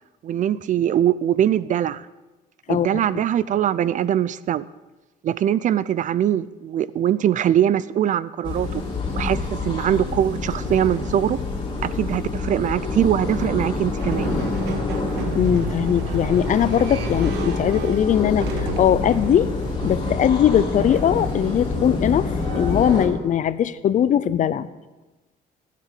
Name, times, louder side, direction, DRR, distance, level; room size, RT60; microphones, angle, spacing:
voice 1, 0.2-2.1 2.7-4.6 5.2-8.8 9.1-11.4 11.8-14.3, right 10 dB, 50° right, 18 dB, 0.5 m, -22 dB
sound 1, 8.4-23.1, left 3 dB, 30° left, 3.5 m, -27 dB
sound 2, 14.0-23.1, right 6 dB, 85° right, 1.3 m, -33 dB
voice 2, 15.3-18.5 18.8-19.5 19.8-22.3 22.6-24.7, left 9 dB, 50° left, 15 dB, 0.6 m, -20 dB
15.5 x 7.6 x 6.7 m, 1.1 s
cardioid pair, 110°, 17 cm